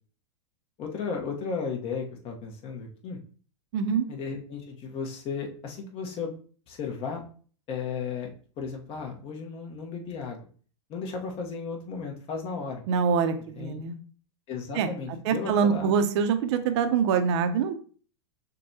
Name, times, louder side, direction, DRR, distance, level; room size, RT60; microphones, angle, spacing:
voice 1, 0.8-3.2 4.1-6.4 6.7-7.3 7.7-8.3 8.6-10.4 10.9-12.8 13.6-13.8 14.5-15.9, left 5 dB, 35° left, 1 dB, 1.0 m, -34 dB
voice 2, 3.7-4.0 12.9-14.0 14.7-14.9 15.2-17.7, right 6 dB, 60° right, 8 dB, 0.6 m, -24 dB
6.3 x 2.3 x 2.7 m, 0.43 s
hypercardioid pair, 125°, 16 cm